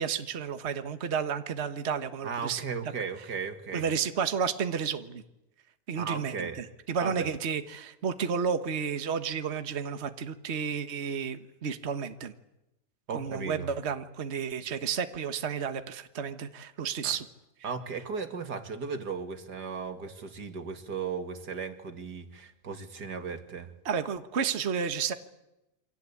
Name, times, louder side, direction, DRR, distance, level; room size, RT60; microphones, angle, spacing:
voice 1, 0.0-2.6 3.7-5.2 5.9-12.3 13.1-17.2 23.8-25.1, right 6 dB, 45° right, 9 dB, 1.6 m, -31 dB
voice 2, 2.2-3.9 6.0-6.6 7.0-7.3 13.1-13.7 17.0-17.2 17.6-23.7, right 5 dB, 80° right, 8 dB, 2.8 m, -36 dB
28.0 x 25.0 x 8.5 m, 0.92 s
omnidirectional pair, 1.7 m